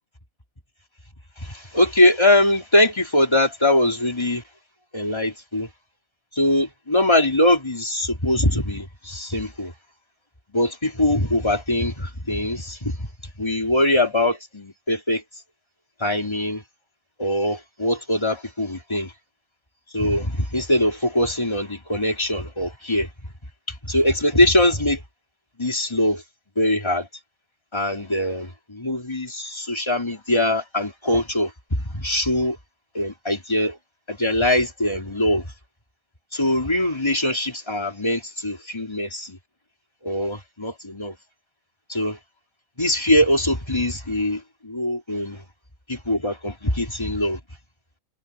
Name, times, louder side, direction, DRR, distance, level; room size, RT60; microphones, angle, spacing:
voice 1, 1.4-4.4 4.9-5.7 6.4-9.7 10.5-13.1 13.4-15.2 16.0-16.6 17.2-19.1 19.9-23.1 23.8-25.0 25.6-26.2 26.6-27.1 27.7-32.6 32.9-33.8 34.1-35.5 36.3-39.4 40.0-41.1 41.9-42.2 42.8-45.4 45.9-47.4, left 1 dB, 5° left, 4.0 m, -22 dB
omnidirectional pair, 3.9 m